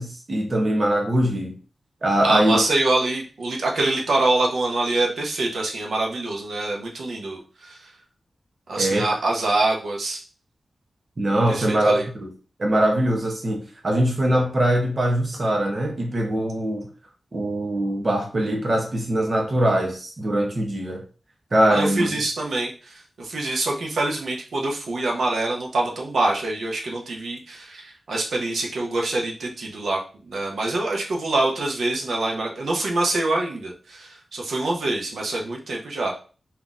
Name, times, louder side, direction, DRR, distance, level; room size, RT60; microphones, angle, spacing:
voice 1, 0.0-1.5 2.0-2.6 8.8-9.0 11.2-12.3 12.6-16.9 17.3-21.0 21.5-22.2, right 1 dB, 35° right, 1 dB, 0.8 m, -22 dB
voice 2, 2.2-7.9 8.7-10.2 11.5-12.1 21.7-30.0 30.3-36.1, right 2 dB, 80° right, 0 dB, 0.9 m, -25 dB
3.9 x 2.8 x 3.6 m, 0.37 s
wide cardioid pair, 180°, 0 cm